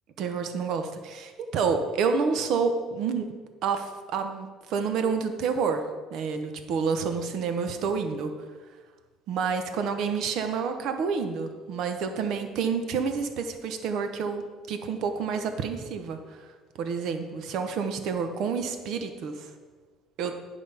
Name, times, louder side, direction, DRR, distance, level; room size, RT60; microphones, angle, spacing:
voice 1, 0.2-3.3 3.6-5.8 6.1-8.3 9.3-14.4 14.7-16.4 16.8-19.5 20.2-20.4, right 5 dB, 55° right, 7 dB, 0.9 m, -29 dB
10.5 x 5.1 x 5.6 m, 1.4 s
cardioid pair, 155°, 0 cm